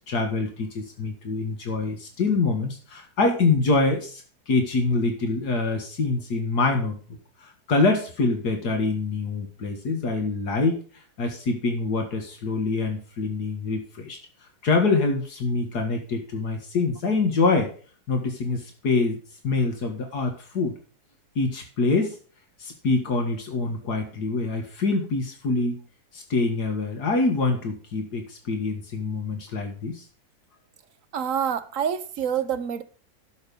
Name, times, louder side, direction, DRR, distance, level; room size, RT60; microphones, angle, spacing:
voice 1, 0.1-7.0 7.4-10.8 11.2-14.2 14.6-17.7 18.1-19.2 19.4-20.7 21.4-22.1 22.6-25.8 26.1-30.0, left 3 dB, 80° left, 2.2 m, -25 dB
voice 2, 31.1-32.8, right 8 dB, 60° right, 1.1 m, -27 dB
11.0 x 6.7 x 5.4 m
omnidirectional pair, 1.7 m